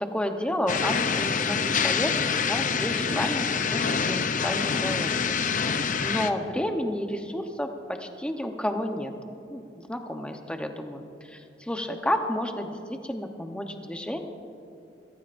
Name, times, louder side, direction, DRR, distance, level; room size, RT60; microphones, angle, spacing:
voice 1, 0.0-5.4 5.7-9.1 9.5-11.0 11.3-14.2, left 1 dB, 5° left, 4 dB, 1.0 m, -31 dB
sound 1, 0.7-6.3, left 6 dB, 45° left, 0.6 m, -26 dB
23.5 x 15.5 x 2.6 m, 2.6 s
head